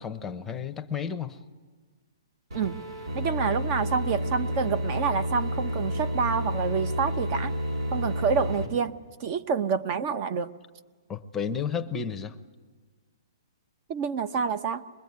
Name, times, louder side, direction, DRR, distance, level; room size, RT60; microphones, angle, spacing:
voice 1, 0.0-1.4 11.1-12.4, left 7 dB, 10° left, 9 dB, 0.8 m, -32 dB
sound 1, 2.5-8.7, equal, 90° right, 4.7 m, -30 dB
voice 2, 3.1-7.5 7.9-10.5 13.9-14.8, right 6 dB, 35° right, 12 dB, 0.8 m, -28 dB
24.0 x 21.5 x 9.5 m, 1.5 s
hypercardioid pair, 155°, 3 cm